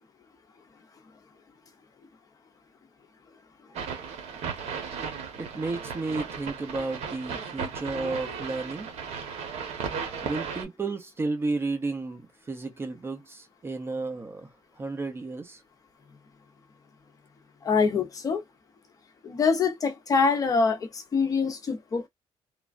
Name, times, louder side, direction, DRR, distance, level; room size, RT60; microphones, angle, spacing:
sound 1, 3.7-10.6, right 6 dB, 75° right, 1.0 m, -35 dB
voice 1, 5.3-8.9 10.2-14.5 14.8-15.6, right 3 dB, 20° right, 0.6 m, -32 dB
voice 2, 17.6-18.4 19.2-22.1, left 5 dB, 30° left, 0.6 m, -25 dB
3.2 x 2.2 x 2.4 m
cardioid pair, 160°, 11 cm